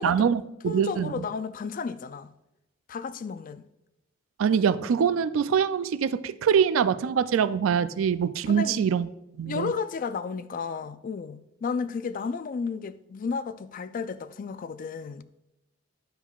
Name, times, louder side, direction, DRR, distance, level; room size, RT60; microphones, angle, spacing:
voice 1, 0.0-1.3 4.4-9.1 9.3-9.7, right 7 dB, 80° right, 0.4 m, -24 dB
voice 2, 0.7-2.3 2.9-3.7 8.5-8.8 9.5-15.3, left 5 dB, 40° left, 0.3 m, -33 dB
10.5 x 7.1 x 2.4 m
head